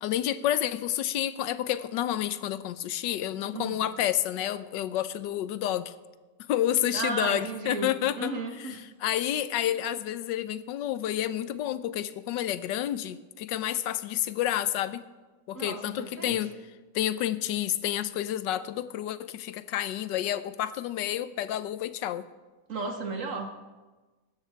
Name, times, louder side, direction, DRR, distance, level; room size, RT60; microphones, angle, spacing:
voice 1, 0.0-6.0 6.5-8.3 8.6-8.7 9.0-15.1 15.5-16.5 16.9-22.2, left 12 dB, 90° left, 15 dB, 1.3 m, -29 dB
voice 2, 6.9-7.9 8.2-8.8 15.5-16.4 22.7-23.5, right 3 dB, 45° right, 4 dB, 1.9 m, -34 dB
17.5 x 13.5 x 4.5 m, 1.2 s
omnidirectional pair, 1.9 m